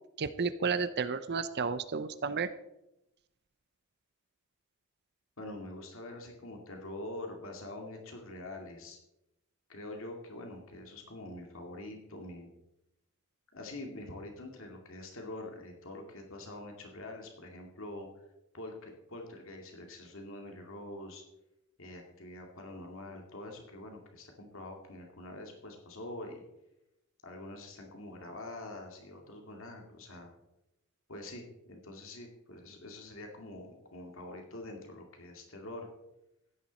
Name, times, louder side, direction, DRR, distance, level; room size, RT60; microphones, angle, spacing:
voice 1, 0.2-2.5, right 5 dB, 50° right, 12 dB, 0.6 m, -32 dB
voice 2, 5.4-9.0 9.7-12.5 13.5-18.1 18.5-21.2 21.8-26.4 27.2-30.3 31.1-35.9, left 1 dB, 65° left, 2 dB, 2.4 m, -45 dB
15.5 x 10.5 x 4.2 m, 0.88 s
head